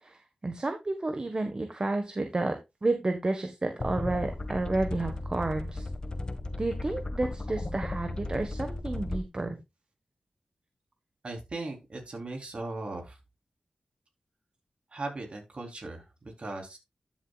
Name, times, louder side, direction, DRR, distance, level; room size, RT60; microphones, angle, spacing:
voice 1, 0.0-2.5 2.8-5.9 6.6-9.6, right 2 dB, 40° right, 6 dB, 1.5 m, -31 dB
sound 1, 3.8-9.2, left 2 dB, 40° left, 1.6 m, -35 dB
voice 2, 11.2-13.2 14.9-16.8, right 2 dB, 55° right, 2 dB, 4.0 m, -38 dB
12.0 x 7.3 x 2.4 m, 0.22 s
cardioid pair, 50°, 2 cm